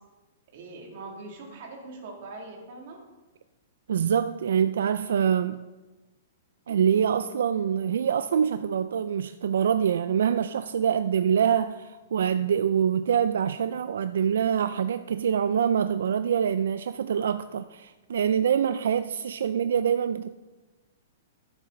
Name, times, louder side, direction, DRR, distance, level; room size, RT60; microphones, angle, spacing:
voice 1, 0.5-3.0, right 3 dB, 45° right, 2.5 m, -42 dB
voice 2, 3.9-5.6 6.7-20.3, right 8 dB, 80° right, 0.4 m, -25 dB
13.5 x 7.8 x 3.8 m
hypercardioid pair, 175°, 0 cm